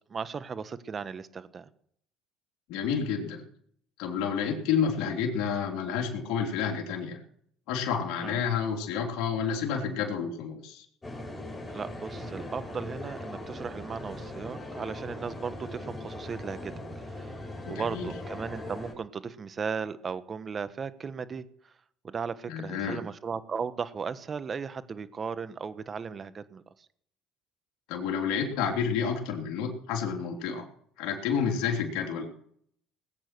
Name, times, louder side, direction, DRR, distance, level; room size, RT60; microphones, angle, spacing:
voice 1, 0.1-1.7 8.2-8.4 11.7-16.7 17.0-17.4 17.7-21.7 22.0-26.6, right 6 dB, 35° right, 14 dB, 1.2 m, -36 dB
voice 2, 2.7-3.4 4.0-7.2 7.7-10.9 17.7-18.1 22.5-23.0 27.9-30.6 31.0-32.3, left 7 dB, 70° left, 1 dB, 3.4 m, -30 dB
sound 1, 11.0-18.9, left 1 dB, 20° left, 6.8 m, -40 dB
19.5 x 9.0 x 6.2 m, 0.65 s
supercardioid pair, 85°, 0 cm